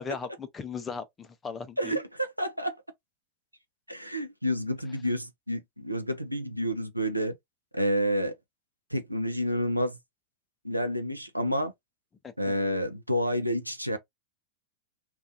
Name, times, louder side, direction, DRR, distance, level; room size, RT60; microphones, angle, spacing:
voice 1, 0.0-1.9 12.2-12.5, left 5 dB, 20° left, 0.5 m, -37 dB
voice 2, 1.8-2.8 3.9-7.3 7.7-8.3 8.9-10.0 10.6-11.7 12.4-14.0, equal, 90° right, 0.5 m, -29 dB
2.4 x 2.3 x 2.6 m
figure-of-eight pair, 90°, 0 cm